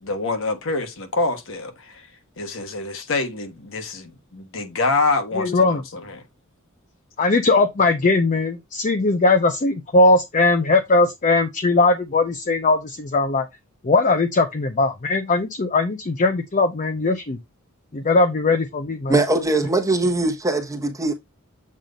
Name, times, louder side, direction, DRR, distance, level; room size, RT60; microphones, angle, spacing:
voice 1, 0.0-2.1 2.4-6.2, left 3 dB, 65° left, 1.3 m, -26 dB
voice 2, 5.3-5.8 7.2-13.5 13.8-17.4 17.9-19.2, left 3 dB, 35° left, 0.6 m, -19 dB
voice 3, 19.1-21.1, right 2 dB, 15° right, 1.1 m, -21 dB
7.4 x 2.6 x 5.1 m
head